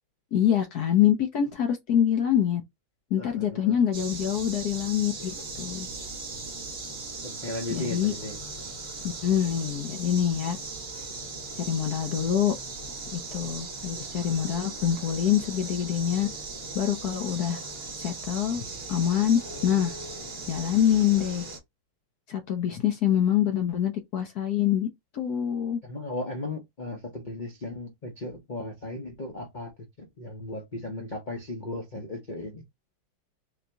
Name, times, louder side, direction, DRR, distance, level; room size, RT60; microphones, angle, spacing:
voice 1, 0.3-2.6 3.1-5.9 7.7-8.1 9.0-10.6 11.6-12.5 13.1-16.3 16.7-17.6 17.9-19.9 20.5-21.5 22.3-24.9 25.1-25.8, left 10 dB, 65° left, 1.0 m, -25 dB
voice 2, 3.2-3.8 7.2-8.4 25.8-29.7 30.0-32.6, left 2 dB, 85° left, 0.4 m, -36 dB
sound 1, 3.9-21.6, right 3 dB, 35° right, 1.2 m, -38 dB
3.9 x 2.9 x 3.4 m
omnidirectional pair, 2.3 m